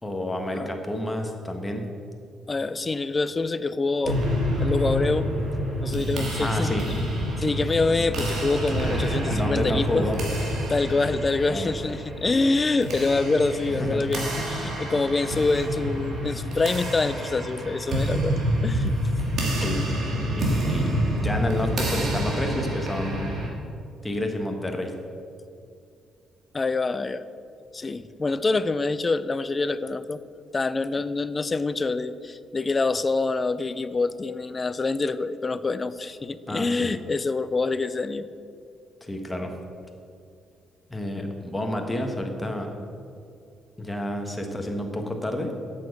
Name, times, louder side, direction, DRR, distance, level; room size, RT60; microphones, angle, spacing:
voice 1, 0.0-1.8 4.6-4.7 6.4-6.9 9.3-10.2 10.5-10.7 11.5-11.7 13.7-14.0 19.6-19.8 20.4-20.9 21.2-23.3 24.0-24.9 36.5-36.9 39.0-39.5 40.9-42.8 43.8-45.5, left 1 dB, 15° left, 3 dB, 1.3 m, -29 dB
voice 2, 2.5-4.2 4.6-5.3 5.8-7.0 7.4-10.1 10.7-19.0 26.5-27.3 27.7-30.2 30.5-38.3, left 3 dB, 30° left, 14 dB, 0.4 m, -26 dB
sound 1, 4.0-23.5, equal, 70° right, 2.6 m, -28 dB
8.3 x 7.0 x 6.6 m, 2.4 s
cardioid pair, 90°, 0 cm